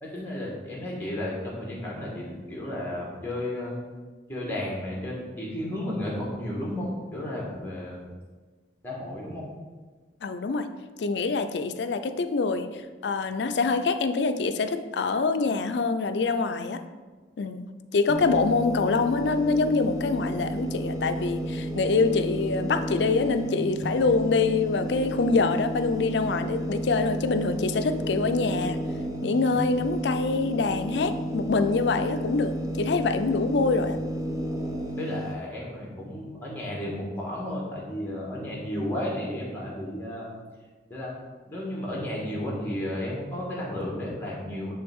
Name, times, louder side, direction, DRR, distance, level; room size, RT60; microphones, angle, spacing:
voice 1, 0.0-3.7 4.3-8.1 8.8-9.5 35.0-40.4 40.9-41.1 41.5-44.7, left 1 dB, 10° left, -4 dB, 1.5 m, -33 dB
voice 2, 10.2-10.7 11.0-12.7 13.0-16.8 17.4-28.8 29.2-34.0, left 4 dB, 75° left, 9 dB, 0.4 m, -25 dB
sound 1, 18.1-35.3, right 1 dB, 20° right, 0.6 m, -32 dB
10.0 x 3.4 x 3.6 m, 1.4 s
head